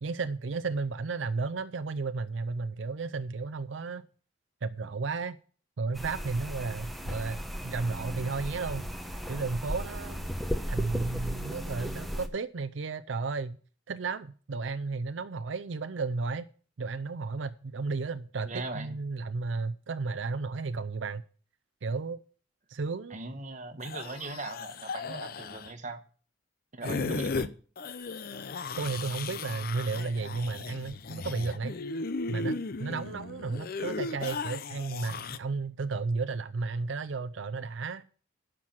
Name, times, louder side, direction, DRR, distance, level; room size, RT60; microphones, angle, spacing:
voice 1, 0.0-4.0 4.6-5.4 5.8-8.9 9.3-10.3 10.7-13.6 13.9-16.5 16.8-21.2 21.8-22.2 22.7-23.2 28.8-31.8 32.3-38.0, right 4 dB, 80° right, 0.6 m, -33 dB
sound 1, 5.9-12.3, equal, ahead, 1.0 m, -35 dB
voice 2, 18.4-18.9 23.1-26.0 26.7-27.6, right 2 dB, 40° right, 1.2 m, -39 dB
sound 2, 23.8-25.7 26.8-27.5 27.8-35.4, left 4 dB, 50° left, 0.6 m, -36 dB
11.0 x 6.0 x 7.4 m
head